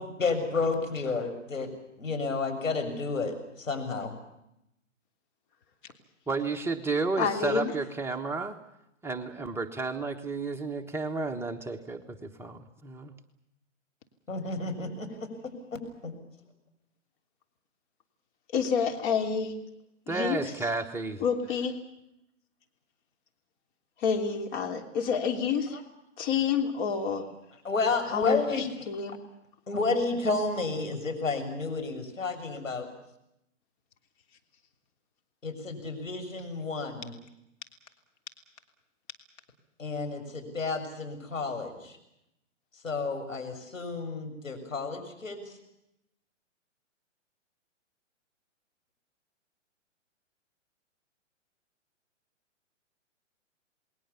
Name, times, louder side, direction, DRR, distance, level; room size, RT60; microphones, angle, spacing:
voice 1, 0.0-1.7 2.0-4.1 14.3-15.3 15.7-16.1 25.7-25.8 27.6-28.7 29.7-32.9 35.4-37.1 39.8-42.0 42.8-45.4, left 3 dB, 90° left, 6 dB, 7.1 m, -31 dB
voice 2, 6.3-8.6 9.0-13.1 20.1-21.2, right 3 dB, 5° right, 3 dB, 1.3 m, -32 dB
voice 3, 7.2-7.7 18.5-19.5 20.1-20.4 21.2-21.7 24.0-25.8 26.2-27.2 28.0-29.2, left 6 dB, 40° left, 4 dB, 3.2 m, -28 dB
28.5 x 21.0 x 7.1 m, 0.83 s
hypercardioid pair, 130°, 38 cm